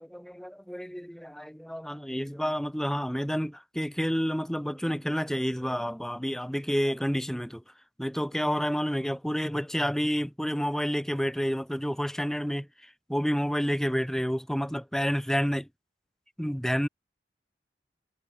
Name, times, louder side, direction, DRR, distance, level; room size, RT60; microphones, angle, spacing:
voice 1, 0.0-7.6 8.0-15.7 16.4-16.9, equal, 5° left, 3.0 m, -29 dB
head